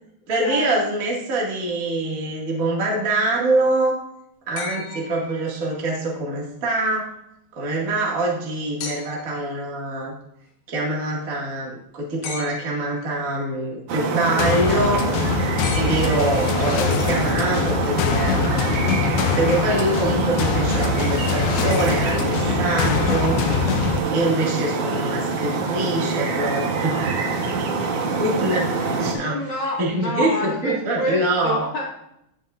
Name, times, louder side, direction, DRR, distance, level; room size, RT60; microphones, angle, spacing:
voice 1, 0.3-4.0 4.5-7.1 7.5-10.1 10.7-15.1 15.7-18.7 19.3-23.4 24.1-27.1 27.4-27.5 27.8-29.4 29.8-31.6, right 2 dB, 65° right, -3 dB, 0.8 m, -24 dB
sound 1, 4.6-5.9 8.8-9.4 12.2-13.0 15.6-16.7 18.2-18.3, left 4 dB, 65° left, 2.1 m, -36 dB
sound 2, 13.9-29.1, right 4 dB, 80° right, 1.7 m, -25 dB
sound 3, 14.4-24.0, left 7 dB, 85° left, 2.3 m, -24 dB
voice 2, 28.7-31.8, equal, 35° left, -5 dB, 2.0 m, -28 dB
17.5 x 5.9 x 2.5 m, 0.79 s
omnidirectional pair, 5.4 m